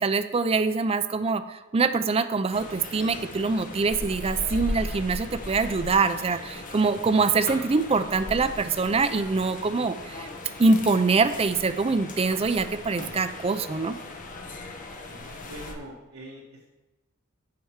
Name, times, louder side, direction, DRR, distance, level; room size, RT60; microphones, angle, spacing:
voice 1, 0.0-10.3 10.6-13.9, right 4 dB, 30° right, 11 dB, 0.4 m, -24 dB
sound 1, 2.5-15.7, left 2 dB, 40° left, 1.0 m, -38 dB
voice 2, 15.1-16.7, right 1 dB, 80° right, -6 dB, 1.8 m, -43 dB
8.6 x 4.5 x 7.3 m, 1.1 s
head